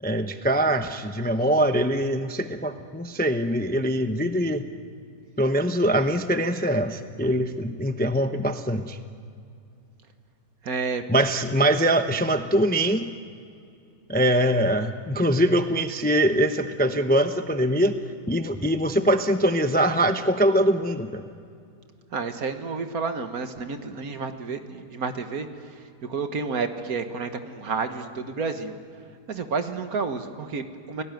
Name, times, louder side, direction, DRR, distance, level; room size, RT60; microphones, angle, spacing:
voice 1, 0.0-4.7 5.4-9.0 11.1-13.1 14.1-18.0 18.3-21.2, right 1 dB, 10° left, 8 dB, 0.6 m, -23 dB
voice 2, 10.6-11.0 22.1-25.5 26.0-28.8 29.3-31.0, right 4 dB, 65° right, 7 dB, 1.9 m, -30 dB
29.0 x 18.5 x 9.3 m, 2.4 s
omnidirectional pair, 1.7 m